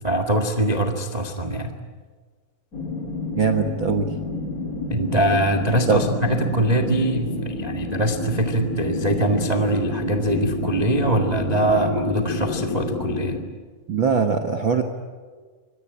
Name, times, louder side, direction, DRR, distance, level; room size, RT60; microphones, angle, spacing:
voice 1, 0.0-1.7 4.9-13.4, right 1 dB, 40° right, 4 dB, 0.5 m, -23 dB
sound 1, 2.7-13.4, left 3 dB, 25° left, 2.3 m, -29 dB
voice 2, 3.4-4.1 5.9-6.0 13.9-14.8, right 5 dB, 60° right, 5 dB, 1.2 m, -21 dB
26.0 x 21.5 x 10.0 m, 1.5 s
omnidirectional pair, 4.2 m